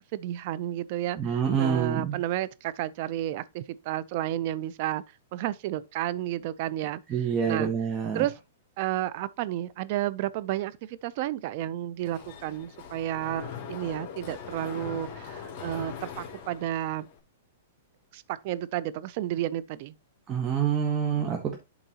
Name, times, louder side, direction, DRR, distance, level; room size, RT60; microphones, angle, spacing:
voice 1, 0.0-5.0 5.3-7.0 7.5-7.7 8.1-8.3 8.8-17.1 18.1-19.9, right 13 dB, 50° right, 0.5 m, -31 dB
voice 2, 1.2-2.2 7.1-8.2 20.3-21.6, right 7 dB, 25° right, 1.3 m, -27 dB
Mechanisms, 12.0-17.2, left 7 dB, 40° left, 2.5 m, -41 dB
11.0 x 3.9 x 2.9 m
hypercardioid pair, 135°, 0 cm